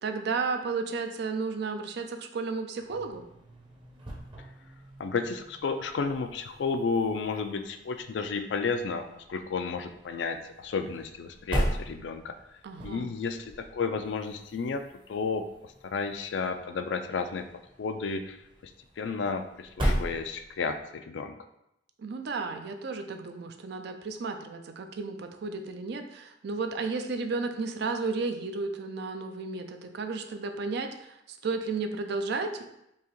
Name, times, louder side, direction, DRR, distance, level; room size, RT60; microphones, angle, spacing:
voice 1, 0.0-3.2 12.6-13.1 22.0-32.7, right 4 dB, 65° right, 6 dB, 0.4 m, -33 dB
sound 1, 2.8-20.8, equal, 30° right, 0.8 m, -38 dB
voice 2, 5.0-12.3 12.8-15.4 15.8-17.4 17.8-18.4 18.6-18.7 19.0-21.4, left 4 dB, 75° left, 8 dB, 0.4 m, -32 dB
4.6 x 2.8 x 3.0 m, 0.81 s
head